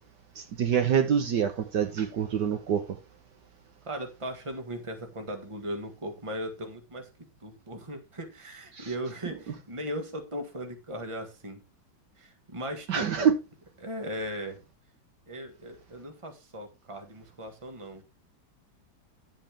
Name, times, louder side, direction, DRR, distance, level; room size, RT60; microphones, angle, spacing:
voice 1, 0.4-3.0 8.7-8.9 9.3-9.4 12.9-13.3, right 8 dB, 65° right, 1.6 m, -26 dB
voice 2, 3.8-7.1 7.4-11.6 12.2-13.3 13.8-14.6 15.3-18.0, equal, 15° right, 1.5 m, -38 dB
10.5 x 7.8 x 3.5 m
omnidirectional pair, 2.1 m